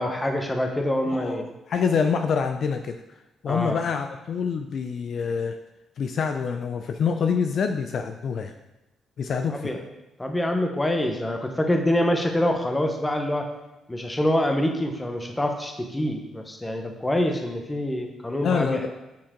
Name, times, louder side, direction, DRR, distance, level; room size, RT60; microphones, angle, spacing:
voice 1, 0.0-1.5 3.5-3.8 9.5-9.8 10.2-13.5 13.9-18.8, left 1 dB, 15° left, 3 dB, 1.0 m, -25 dB
voice 2, 1.0-3.0 3.4-5.6 6.0-8.5 9.2-9.7 18.4-18.9, left 6 dB, 60° left, 6 dB, 0.4 m, -26 dB
7.4 x 4.4 x 3.8 m, 1.0 s
cardioid pair, 90°, 0 cm